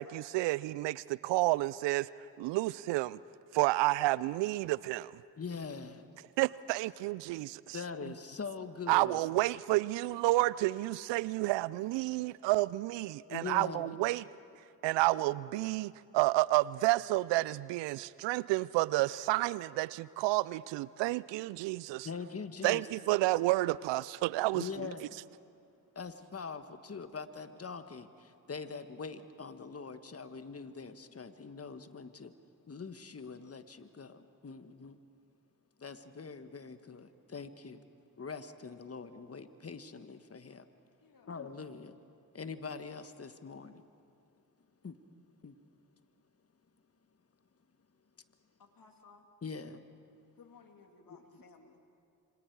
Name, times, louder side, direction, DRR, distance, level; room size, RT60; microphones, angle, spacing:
voice 1, 0.0-2.1 2.4-3.2 3.5-5.2 6.4-7.8 8.9-14.2 14.8-22.1 22.6-24.7, right 19 dB, 75° right, 0.5 m, -30 dB
voice 2, 5.4-6.1 7.7-9.2 13.3-14.0 22.0-22.9 24.5-25.2 25.9-32.3 32.7-35.0 35.8-37.8 38.2-40.7 41.2-42.0 42.3-43.8 44.8-44.9 45.4-45.5 49.4-49.8 51.3-51.4, left 5 dB, 35° left, 1.5 m, -43 dB
voice 3, 41.0-41.3 48.6-49.2 50.4-51.8, left 4 dB, 50° left, 2.9 m, -59 dB
27.0 x 24.5 x 4.7 m
hypercardioid pair, 40°, 43 cm